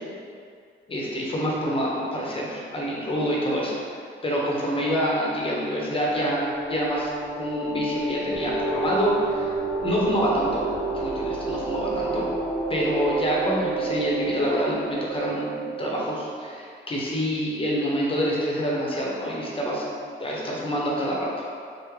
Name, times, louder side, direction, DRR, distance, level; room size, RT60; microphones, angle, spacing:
voice 1, 0.9-3.8 4.2-9.5 9.8-10.6 10.9-12.3 12.7-19.8 20.2-21.5, equal, 25° left, -4 dB, 0.7 m, -26 dB
sound 1, 5.8-16.1, right 3 dB, 5° right, 0.5 m, -30 dB
3.5 x 2.1 x 3.2 m, 2.2 s
cardioid pair, 90°, 20 cm